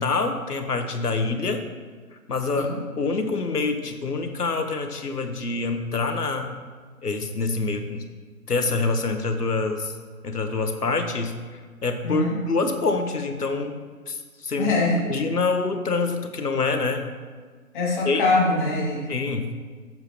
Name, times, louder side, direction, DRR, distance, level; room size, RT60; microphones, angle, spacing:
voice 1, 0.0-1.6 2.3-2.7 3.0-6.5 7.0-8.0 8.5-9.9 10.2-11.3 11.8-13.7 14.1-17.0 18.0-18.2 19.1-19.5, left 3 dB, 80° left, 6 dB, 1.4 m, -26 dB
voice 2, 12.0-12.4 14.6-15.0 17.7-19.1, left 2 dB, 30° left, -4 dB, 2.7 m, -23 dB
12.0 x 7.8 x 3.1 m, 1.5 s
figure-of-eight pair, 145°, 46 cm